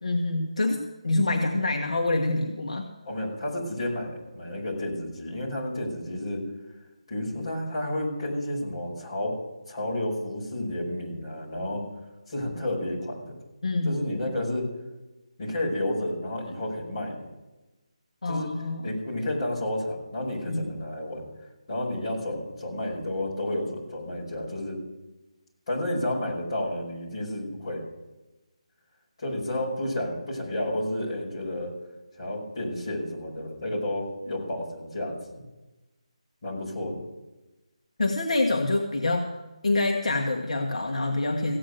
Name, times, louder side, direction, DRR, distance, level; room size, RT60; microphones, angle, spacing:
voice 1, 0.0-2.8 13.6-14.0 18.2-18.9 20.5-20.7 38.0-39.3 39.6-41.6, left 2 dB, 70° left, 2 dB, 1.6 m, -26 dB
voice 2, 3.0-6.4 7.1-9.4 9.7-11.8 12.3-13.4 13.8-14.7 15.4-17.3 18.2-18.5 18.8-21.2 21.7-24.8 25.7-27.8 29.2-31.7 32.2-35.4 36.4-37.0, left 1 dB, 35° left, -3 dB, 5.3 m, -31 dB
16.0 x 9.0 x 6.5 m, 1.1 s
figure-of-eight pair, 175°, 4 cm